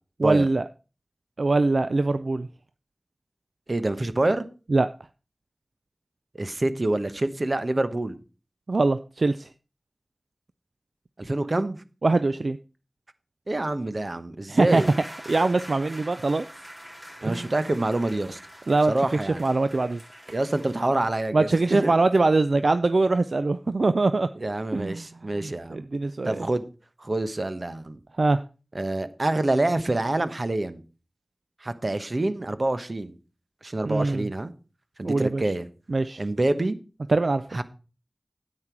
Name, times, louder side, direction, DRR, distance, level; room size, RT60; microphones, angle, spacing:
voice 1, 0.2-0.6 1.4-2.5 4.7-4.9 8.7-9.5 12.0-12.6 14.5-14.8 15.3-16.4 17.2-17.5 18.7-18.9 19.4-20.0 21.3-24.3 24.7-25.1 25.4-26.5 28.2-28.4 33.8-34.3 35.0-35.4 35.9-36.2 37.1-37.6, right 3 dB, 80° right, 12 dB, 0.4 m, -23 dB
voice 2, 3.7-4.4 6.3-8.2 11.2-11.8 13.5-14.9 17.2-18.4 18.9-19.4 20.3-22.0 24.4-25.9 26.2-26.6 27.0-28.0 28.7-30.8 31.6-33.2 33.6-34.5 35.0-35.7 36.2-36.8 37.5-37.6, right 2 dB, 55° right, 11 dB, 1.0 m, -26 dB
sound 1, 14.7-20.8, equal, 35° right, 3.6 m, -44 dB
9.8 x 8.9 x 4.6 m, 0.33 s
wide cardioid pair, 45°, 0 cm